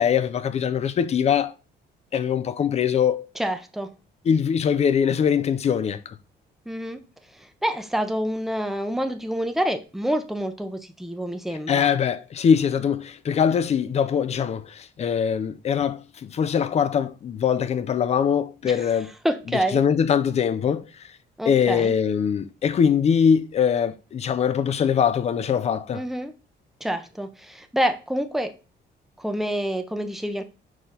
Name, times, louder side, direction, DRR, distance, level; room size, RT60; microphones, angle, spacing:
voice 1, 0.0-1.5 2.1-3.3 4.3-6.1 11.7-19.1 19.7-21.1 21.5-26.0, left 7 dB, 35° left, 0.5 m, -22 dB
voice 2, 3.4-3.9 6.7-11.9 18.6-18.9 19.2-19.8 21.4-21.9 25.9-26.3 26.8-28.6 29.2-30.4, equal, ahead, 0.7 m, -27 dB
4.9 x 3.9 x 5.6 m
cardioid pair, 140°, 18 cm